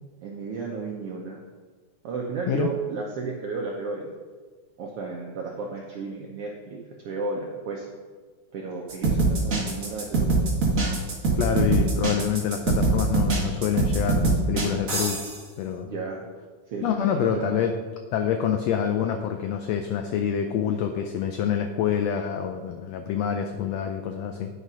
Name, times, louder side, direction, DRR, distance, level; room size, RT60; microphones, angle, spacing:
voice 1, 0.2-1.4 2.0-4.1 4.8-6.8 7.0-7.8 8.5-10.3 15.8-16.3 16.7-17.6, right 4 dB, 80° right, 0 dB, 1.3 m, -33 dB
sound 1, 8.9-15.4, right 3 dB, 50° right, 0.9 m, -23 dB
voice 2, 11.3-15.2 15.6-15.9 16.8-17.7 18.1-24.5, left 8 dB, 90° left, 6 dB, 1.4 m, -26 dB
9.7 x 5.1 x 5.5 m, 1.5 s
omnidirectional pair, 3.6 m